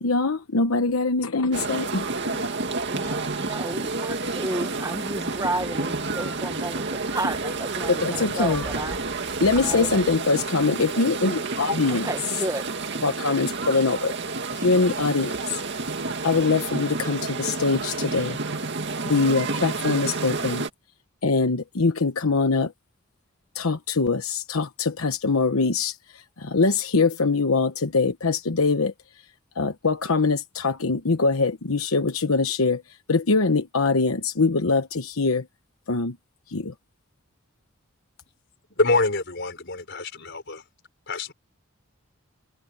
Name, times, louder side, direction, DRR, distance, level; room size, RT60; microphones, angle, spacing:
voice 1, 0.0-2.4 8.0-8.6 9.4-12.1 13.0-14.1 14.6-15.5 16.2-18.4 19.0-20.6 21.2-22.7 23.5-28.9 29.6-32.8 33.1-35.5 35.9-36.2 36.5-36.7, left 4 dB, 80° left, 1.0 m, -23 dB
sound 1, 1.5-20.7, right 3 dB, 55° right, 2.2 m, -30 dB
voice 2, 2.8-9.0 9.3-9.9 11.8-12.6 12.9-13.0, right 2 dB, 15° right, 1.2 m, -32 dB
voice 3, 38.7-40.6 41.1-41.3, left 3 dB, 55° left, 4.9 m, -25 dB
head